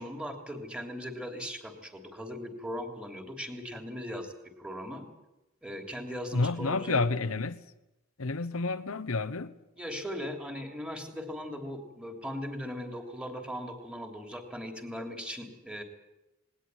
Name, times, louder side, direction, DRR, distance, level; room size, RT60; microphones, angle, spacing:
voice 1, 0.0-5.0 5.6-7.1 9.8-15.8, equal, 5° right, 3.2 m, -39 dB
voice 2, 6.3-7.6 8.2-9.5, left 3 dB, 70° left, 1.1 m, -29 dB
19.5 x 19.5 x 9.2 m
head